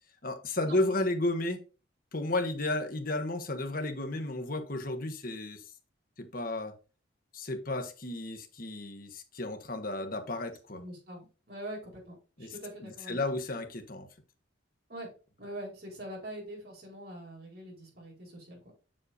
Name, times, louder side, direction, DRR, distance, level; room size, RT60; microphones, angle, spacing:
voice 1, 0.2-1.6 2.1-5.6 6.2-6.7 7.3-10.8 12.4-12.5 12.8-14.1, left 2 dB, 45° left, 1.3 m, -33 dB
voice 2, 10.7-13.2 14.9-15.1 15.4-18.7, right 1 dB, 50° right, 4.4 m, -43 dB
7.6 x 6.4 x 2.7 m
head